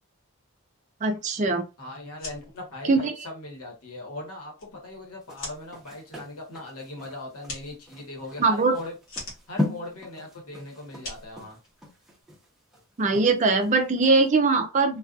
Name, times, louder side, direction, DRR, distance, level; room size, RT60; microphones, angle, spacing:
voice 1, 1.0-1.6 2.9-3.1 8.4-8.7 13.0-15.0, right 3 dB, 30° right, 6 dB, 0.4 m, -21 dB
voice 2, 1.8-8.9 9.2-11.6, left 2 dB, 90° left, 0 dB, 1.0 m, -39 dB
sound 1, 2.0-12.2, left 2 dB, 55° left, 1.0 m, -45 dB
sound 2, 5.2-13.8 14.2-14.3, left 2 dB, ahead, 0.7 m, -36 dB
2.4 x 2.3 x 2.4 m, 0.28 s
head